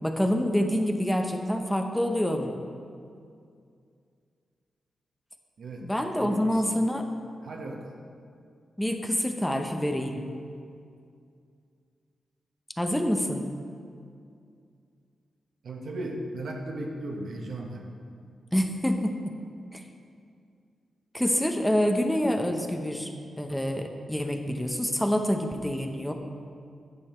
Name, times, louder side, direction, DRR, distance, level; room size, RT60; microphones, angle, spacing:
voice 1, 0.0-2.6 5.8-7.1 8.8-10.3 12.8-13.4 18.5-19.4 19.7-19.8 21.1-26.1, equal, 5° left, 4 dB, 0.8 m, -27 dB
voice 2, 5.6-5.9 6.2-6.8 7.4-7.8 15.6-17.9, right 1 dB, 70° right, 1 dB, 1.2 m, -36 dB
9.5 x 7.1 x 4.4 m, 2.3 s
cardioid pair, 65°, 0 cm